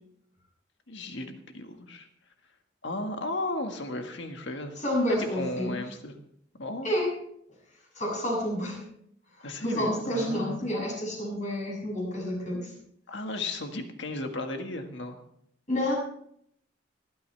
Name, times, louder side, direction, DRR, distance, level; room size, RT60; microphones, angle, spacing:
voice 1, 0.9-2.1 2.8-4.8 5.2-6.2 6.6-6.9 9.4-10.6 13.1-15.2, left 2 dB, 65° left, 5 dB, 1.7 m, -35 dB
voice 2, 4.8-5.8 6.8-7.1 8.0-8.8 9.4-12.7 15.7-15.9, equal, 40° left, -3 dB, 7.3 m, -29 dB
25.5 x 9.6 x 3.4 m, 0.68 s
head